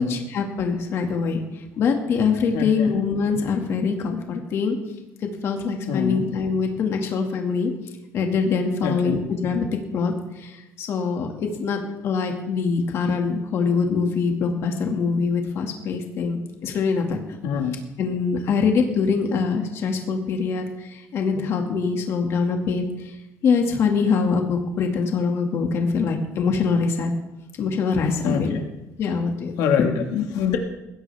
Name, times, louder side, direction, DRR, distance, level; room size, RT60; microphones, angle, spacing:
voice 1, 0.0-4.8 5.2-7.7 8.1-17.2 18.0-23.2 23.4-27.1 27.6-28.6 29.0-29.5, left 5 dB, 45° left, 3 dB, 2.1 m, -24 dB
voice 2, 2.5-2.9 5.9-6.3 8.8-9.2 17.4-17.8 28.2-28.6 29.0-29.1 29.6-30.6, left 7 dB, 80° left, 3 dB, 1.9 m, -25 dB
20.5 x 16.0 x 3.5 m, 0.98 s
cardioid pair, 165°, 6 cm